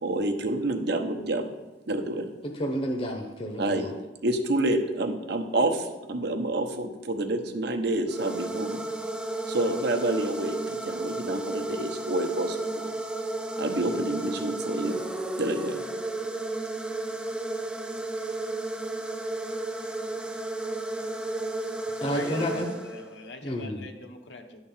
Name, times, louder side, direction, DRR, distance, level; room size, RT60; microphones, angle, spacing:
voice 1, 0.0-1.5 1.9-2.3 3.6-3.9 4.2-8.8 9.5-12.9 13.6-15.0 15.4-15.8, right 2 dB, 65° right, 5 dB, 0.9 m, -28 dB
voice 2, 2.4-3.8 22.0-22.7 23.4-23.8, equal, 30° left, 1 dB, 0.8 m, -30 dB
sound 1, 8.1-23.3, right 2 dB, 5° right, 0.4 m, -33 dB
voice 3, 21.9-24.6, left 2 dB, 70° left, 4 dB, 1.0 m, -42 dB
10.5 x 3.8 x 7.2 m, 1.2 s
head